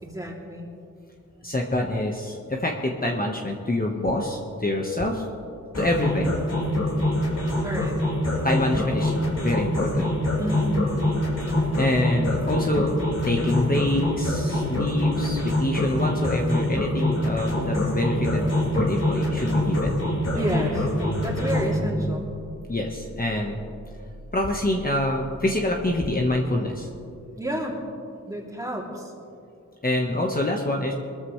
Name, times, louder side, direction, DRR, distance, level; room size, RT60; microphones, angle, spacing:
voice 1, 0.0-0.7 7.6-8.0 10.4-10.9 12.1-12.9 20.3-20.9 21.2-22.3 27.4-27.8 28.3-29.1, right 1 dB, 10° right, -2 dB, 2.9 m, -31 dB
voice 2, 1.4-5.2 5.8-6.3 8.4-10.1 11.8-12.9 13.2-18.5 18.7-20.0 22.7-23.6 24.3-26.9 29.8-30.9, left 1 dB, 30° left, 0 dB, 1.3 m, -26 dB
sound 1, 5.7-21.7, left 1 dB, 55° left, 4.5 m, -25 dB
sound 2, 20.3-26.4, equal, 55° right, 2.3 m, -38 dB
23.0 x 13.5 x 3.2 m, 2.6 s
wide cardioid pair, 75°, 30 cm